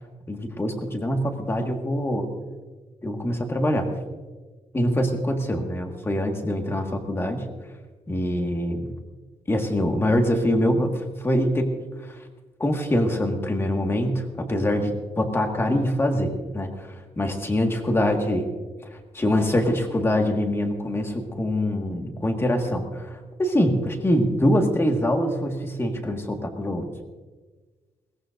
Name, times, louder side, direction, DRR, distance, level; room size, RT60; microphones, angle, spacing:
voice 1, 0.3-2.3 3.0-3.9 4.7-7.4 8.1-8.9 9.5-11.7 12.6-16.7 17.2-18.4 18.9-26.9, left 1 dB, 20° left, 3 dB, 1.7 m, -24 dB
21.5 x 18.0 x 2.6 m, 1.3 s
wide cardioid pair, 160°, 13 cm